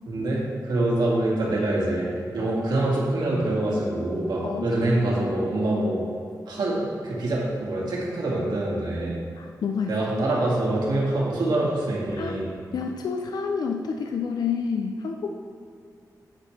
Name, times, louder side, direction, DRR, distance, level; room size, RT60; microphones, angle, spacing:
voice 1, 0.1-6.0 6.5-9.2 9.9-12.6, right 1 dB, 85° right, -5 dB, 2.3 m, -25 dB
voice 2, 4.4-4.8 9.4-9.9 12.2-12.4 12.7-15.3, left 6 dB, 70° left, 3 dB, 0.5 m, -29 dB
9.5 x 8.3 x 3.3 m, 2.3 s
wide cardioid pair, 170°, 7 cm